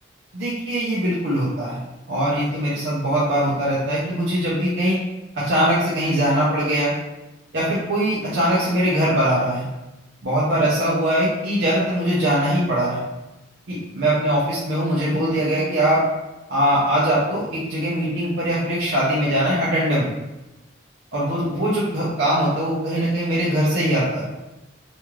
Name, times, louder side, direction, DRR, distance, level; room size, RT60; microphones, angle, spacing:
voice 1, 0.3-1.8 2.1-5.0 5.3-6.9 7.5-9.7 10.2-13.0 13.7-16.0 16.5-20.1 21.1-24.2, right 1 dB, 65° right, -8 dB, 0.7 m, -21 dB
3.1 x 2.6 x 2.3 m, 1.0 s
head